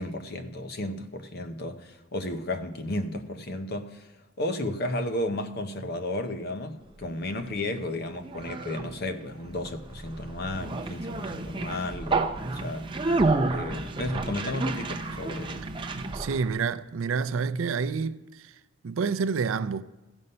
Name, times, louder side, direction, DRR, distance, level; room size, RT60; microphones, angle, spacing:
voice 1, 0.0-12.9 13.5-15.7 16.0-16.2, left 1 dB, 50° left, 0.8 m, -33 dB
Conversation, 7.0-16.5, right 3 dB, 25° right, 0.5 m, -31 dB
voice 2, 15.9-19.8, right 5 dB, 75° right, 0.4 m, -29 dB
15.0 x 5.4 x 5.5 m
head